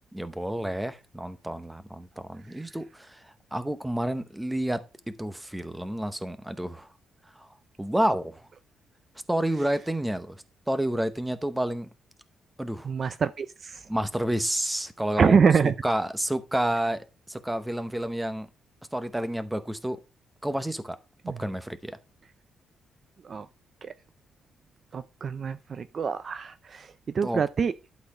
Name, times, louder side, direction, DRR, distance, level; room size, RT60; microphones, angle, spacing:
voice 1, 0.1-4.8 5.2-6.9 7.4-7.5 7.8-8.4 9.3-10.4 10.7-11.9 12.6-12.9 13.9-15.4 15.6-18.5 18.9-20.0 20.4-21.0 21.3-22.0 27.2-27.4, right 1 dB, 5° right, 0.8 m, -30 dB
voice 2, 12.8-13.9 15.2-15.7 21.2-21.4 23.2-23.5 23.8-23.9 24.9-27.7, right 6 dB, 35° right, 0.4 m, -25 dB
11.5 x 4.1 x 5.4 m
cardioid pair, 160°, 0 cm